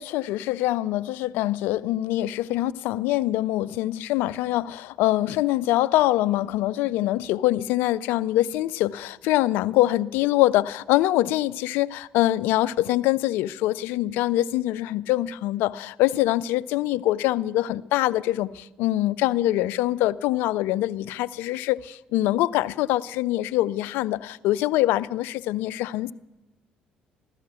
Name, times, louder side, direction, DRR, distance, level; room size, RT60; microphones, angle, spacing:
voice 1, 0.0-26.1, left 15 dB, 75° left, 0.4 m, -24 dB
16.0 x 12.5 x 6.2 m
hypercardioid pair, 55°, 4 cm